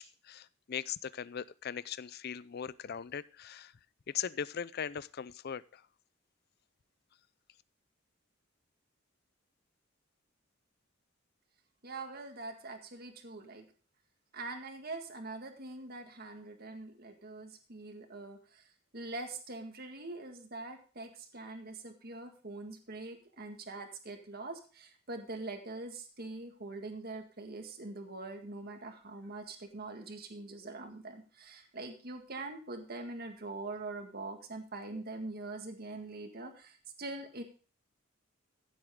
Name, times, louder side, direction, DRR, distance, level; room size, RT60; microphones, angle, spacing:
voice 1, 0.0-3.7 4.1-5.8, left 8 dB, 50° left, 19 dB, 0.5 m, -39 dB
voice 2, 11.8-13.6 14.3-18.7 18.9-37.4, right 2 dB, 50° right, 5 dB, 1.8 m, -43 dB
15.5 x 7.8 x 3.7 m, 0.37 s
head